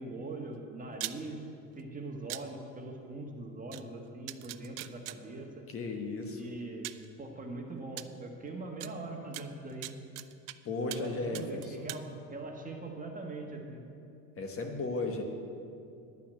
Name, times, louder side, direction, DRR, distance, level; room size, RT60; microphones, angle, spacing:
voice 1, 0.0-1.4 1.7-5.6 6.3-6.9 7.2-9.9 10.9-12.0 12.3-13.8, right 2 dB, 20° right, 1 dB, 1.5 m, -42 dB
sound 1, 0.9-1.2 2.3-2.4 3.7-3.8 4.3-5.2 6.2-6.3 6.8-7.1 8.0-8.1 8.8-8.9 9.3-10.6 10.9-11.1 11.3-12.0, right 18 dB, 55° right, 0.5 m, -40 dB
voice 2, 5.7-6.4 10.6-11.9 14.4-15.2, left 3 dB, 35° left, 3 dB, 1.4 m, -35 dB
10.5 x 5.8 x 8.7 m, 2.5 s
supercardioid pair, 110°, 39 cm